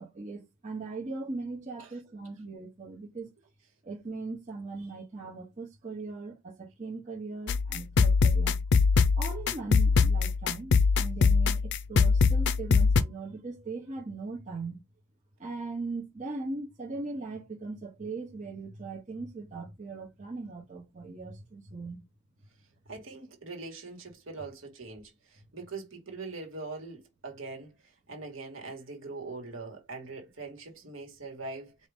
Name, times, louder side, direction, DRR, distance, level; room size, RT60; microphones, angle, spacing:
voice 1, 0.0-3.3 3.8-8.6 9.2-14.8 15.4-22.0, right 3 dB, 35° right, 1.0 m, -39 dB
sound 1, 7.5-13.0, left 5 dB, 55° left, 0.4 m, -23 dB
voice 2, 22.9-27.7 28.1-31.8, right 3 dB, 70° right, 1.7 m, -42 dB
4.7 x 2.7 x 3.5 m
head